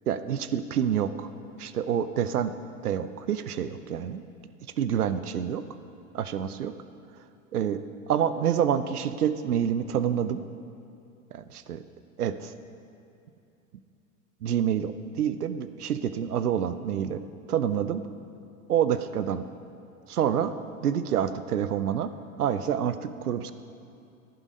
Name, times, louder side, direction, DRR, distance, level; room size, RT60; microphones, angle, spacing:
voice 1, 0.1-1.3 1.6-2.5 2.8-4.2 4.8-5.6 6.1-6.7 7.5-10.4 11.3-11.8 12.2-12.5 14.4-17.2 17.5-18.0 18.7-19.4 20.1-20.5 20.8-22.1 22.4-23.5, right 9 dB, 90° right, 12 dB, 0.6 m, -27 dB
11.0 x 10.5 x 5.1 m, 2.7 s
hypercardioid pair, 80°, 44 cm